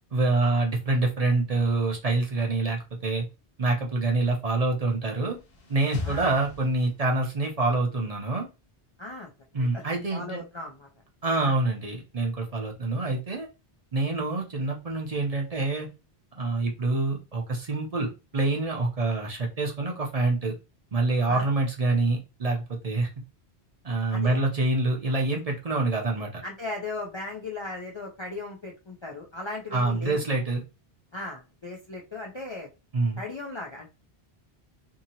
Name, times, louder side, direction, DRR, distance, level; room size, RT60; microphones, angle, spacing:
voice 1, 0.1-3.2 3.6-5.4 5.7-8.5 9.5-10.4 11.2-13.5 13.9-15.9 16.4-20.5 20.9-23.1 23.8-26.4 29.7-30.6 32.9-33.2, right 2 dB, 45° right, 0 dB, 0.6 m, -26 dB
sound 1, 5.0-7.4, left 3 dB, 65° left, 1.0 m, -39 dB
voice 2, 9.0-9.3 9.6-9.8 10.1-10.9 11.4-11.6 21.3-21.5 24.1-24.4 26.4-30.3 31.1-32.7 33.2-33.9, left 2 dB, 45° left, -1 dB, 0.4 m, -37 dB
2.7 x 2.7 x 2.7 m, 0.28 s
omnidirectional pair, 1.1 m